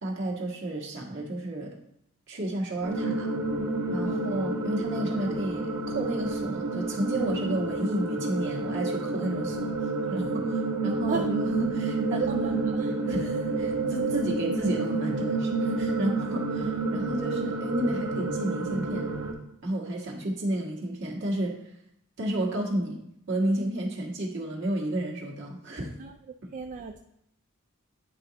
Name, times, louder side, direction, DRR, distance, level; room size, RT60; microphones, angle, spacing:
voice 1, 0.0-1.8 2.3-3.3 3.9-12.6 13.0-19.1 19.6-21.6 22.2-23.0 23.3-25.9, right 1 dB, 60° right, -2 dB, 1.5 m, -31 dB
sound 1, 2.8-19.3, right 3 dB, 80° right, 1.3 m, -29 dB
voice 2, 12.1-12.9 26.0-26.2 26.5-27.0, right 6 dB, 35° right, 4 dB, 0.3 m, -34 dB
9.9 x 3.9 x 2.9 m, 0.78 s
head